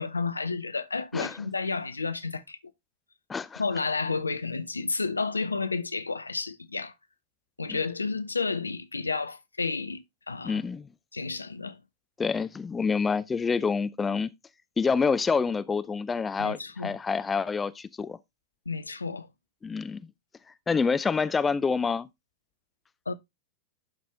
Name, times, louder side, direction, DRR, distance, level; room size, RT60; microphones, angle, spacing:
voice 1, 0.0-2.6 3.6-6.9 7.6-10.6 11.1-11.8 16.4-17.0 18.7-19.3 23.1-23.2, left 4 dB, 80° left, 0.6 m, -31 dB
voice 2, 3.3-3.6 7.7-7.8 10.4-10.9 12.2-14.3 14.8-18.2 19.6-20.0 20.7-22.1, left 5 dB, 15° left, 0.5 m, -27 dB
11.5 x 4.3 x 3.3 m
figure-of-eight pair, 90°, 0 cm